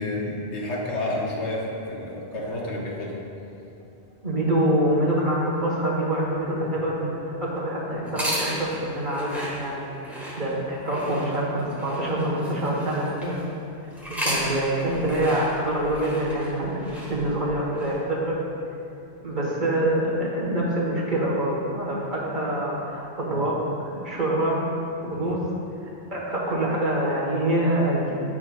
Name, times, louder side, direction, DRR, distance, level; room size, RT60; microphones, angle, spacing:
voice 1, 0.0-3.1 25.1-25.3, left 1 dB, 85° left, -4 dB, 1.4 m, -30 dB
voice 2, 4.2-13.5 14.2-18.3 19.2-24.6 25.1-25.4 26.1-28.1, right 1 dB, 45° right, -6 dB, 1.3 m, -25 dB
sound 1, 8.1-13.4 13.9-17.9, equal, ahead, 1.3 m, -34 dB
8.7 x 6.1 x 2.2 m, 2.7 s
omnidirectional pair, 1.1 m